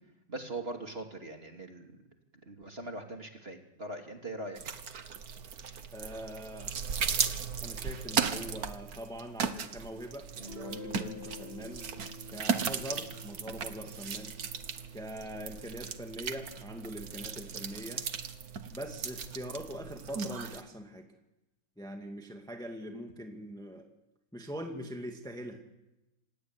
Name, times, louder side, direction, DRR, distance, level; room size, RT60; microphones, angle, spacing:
voice 1, 0.3-2.0 2.5-4.6, right 2 dB, 30° right, 3 dB, 2.8 m, -41 dB
sound 1, 4.6-20.6, right 6 dB, 50° right, 1.6 m, -36 dB
voice 2, 5.9-6.7 7.6-11.9 12.3-14.3 14.9-18.1 18.7-21.1 21.8-23.9 24.3-25.6, equal, ahead, 3 dB, 2.0 m, -42 dB
Guitar, 10.4-15.9, left 3 dB, 25° left, 3.0 m, -49 dB
26.5 x 17.5 x 9.7 m, 0.95 s
omnidirectional pair, 2.3 m